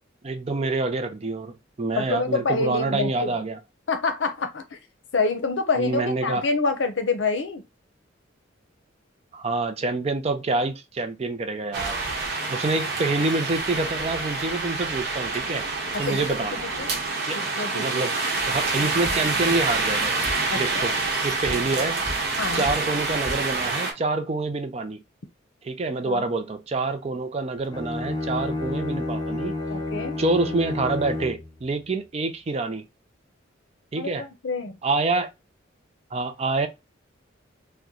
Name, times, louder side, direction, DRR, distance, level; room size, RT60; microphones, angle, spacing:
voice 1, 0.2-3.6 5.8-6.5 9.3-12.0 12.5-15.7 16.0-16.7 17.2-17.4 17.7-18.1 18.5-20.2 20.6-20.9 21.2-22.0 22.5-25.0 25.6-29.5 30.2-32.8 33.9-34.3 34.8-35.3 36.1-36.7, right 3 dB, 30° right, 0.4 m, -27 dB
voice 2, 2.0-3.3 3.9-4.8 5.1-7.6 16.1-16.9 17.3-18.0 20.5-21.0 21.4-21.6 22.4-22.7 26.0-26.3 29.7-30.2 34.0-34.8, left 3 dB, 65° left, 0.7 m, -27 dB
sound 1, 11.7-23.9, right 3 dB, 55° right, 0.9 m, -27 dB
sound 2, 19.1-19.3 20.3-20.5 21.5-21.7 22.1-22.3 22.7-22.9 23.3-23.5, equal, 5° right, 1.4 m, -34 dB
Bowed string instrument, 27.6-31.5, left 2 dB, 20° left, 0.6 m, -30 dB
2.9 x 2.1 x 3.7 m
head